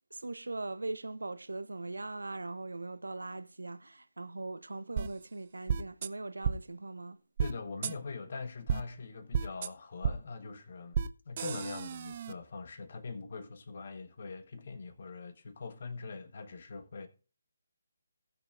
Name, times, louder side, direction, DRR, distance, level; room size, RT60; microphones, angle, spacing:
voice 1, 0.1-7.2, right 2 dB, 70° right, 0.7 m, -40 dB
sound 1, 5.0-5.1 5.7-6.1 6.4-6.6 7.4-7.5 7.8-7.9 8.7-8.8 9.3-9.7 10.0-10.1 10.9-11.1 11.4-12.3, right 7 dB, 35° right, 0.5 m, -31 dB
voice 2, 7.4-11.0 11.2-17.1, left 4 dB, 45° left, 1.3 m, -42 dB
19.0 x 6.6 x 2.5 m
figure-of-eight pair, 145°, 0 cm